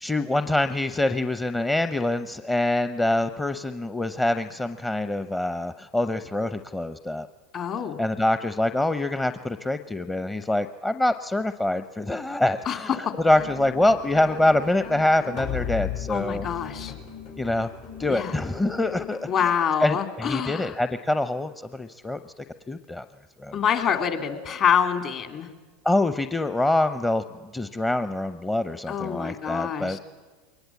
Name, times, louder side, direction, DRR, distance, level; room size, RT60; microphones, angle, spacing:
voice 1, 0.0-7.3 8.0-16.5 17.4-17.7 18.0-19.3 19.8-23.0 23.4-23.6 25.8-27.2 27.5-30.0, left 1 dB, 10° left, 10 dB, 0.7 m, -25 dB
voice 2, 7.5-8.0 12.7-13.1 16.1-16.9 18.1-18.3 19.3-20.7 23.5-25.5 28.9-30.0, left 8 dB, 45° left, 7 dB, 2.6 m, -26 dB
sound 1, 13.3-19.5, left 8 dB, 75° left, 6.8 m, -37 dB
22.0 x 19.5 x 8.2 m, 1.4 s
hypercardioid pair, 95°, 0 cm